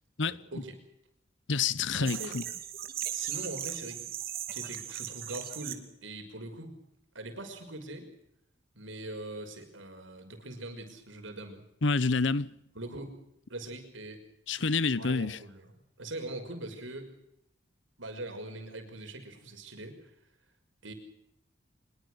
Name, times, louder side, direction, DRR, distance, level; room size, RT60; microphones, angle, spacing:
voice 1, 0.2-0.8 1.9-2.4 3.1-4.0 4.5-6.7 7.1-8.1 8.8-11.6 12.7-13.2 13.5-14.2 15.0-15.7 16.0-17.1 18.0-20.0 20.8-20.9, right 2 dB, 85° right, 6.0 m, -42 dB
voice 2, 1.5-2.4 11.8-12.5 14.5-15.4, left 4 dB, 70° left, 1.0 m, -28 dB
sound 1, 2.1-5.7, right 11 dB, 50° right, 2.6 m, -37 dB
25.0 x 22.0 x 6.5 m
head